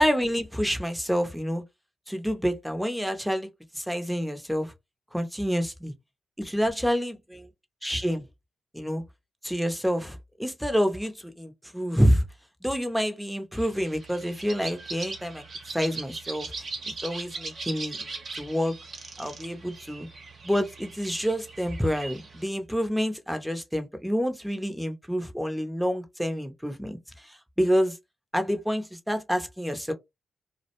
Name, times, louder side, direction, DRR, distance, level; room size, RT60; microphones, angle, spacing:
voice 1, 0.0-1.6 2.1-3.5 3.7-4.7 5.1-5.9 6.4-7.5 7.8-8.3 8.7-9.0 9.4-12.2 12.6-15.4 15.7-16.7 17.0-18.1 18.4-18.8 19.2-20.1 20.4-28.0 28.3-29.9, equal, ahead, 0.7 m, -28 dB
sound 1, 13.5-22.4, right 3 dB, 60° right, 0.8 m, -40 dB
2.3 x 2.0 x 2.9 m
supercardioid pair, 50°, 0 cm